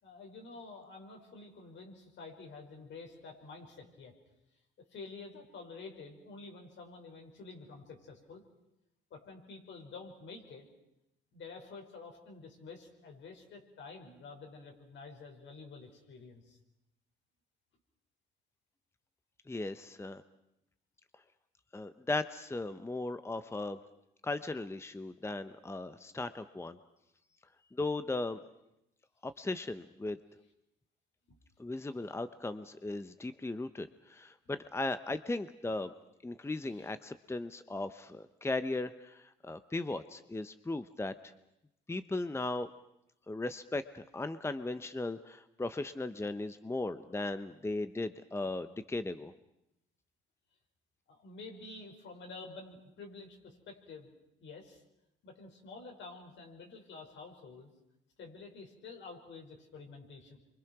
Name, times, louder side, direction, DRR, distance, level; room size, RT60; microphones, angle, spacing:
voice 1, 0.0-4.1 4.9-8.4 9.1-10.7 11.3-16.6 31.3-31.4 31.8-31.9 36.6-36.9 51.1-54.1 54.4-54.8 55.2-57.7 58.2-60.4, left 3 dB, 70° left, 2 dB, 5.7 m, -49 dB
voice 2, 19.5-20.2 21.7-23.8 24.2-26.8 27.7-28.4 29.2-30.2 31.6-35.9 36.2-41.1 41.9-42.7 43.3-49.3, left 2 dB, 15° left, 11 dB, 0.9 m, -37 dB
28.0 x 24.5 x 6.1 m, 0.84 s
cardioid pair, 90°, 20 cm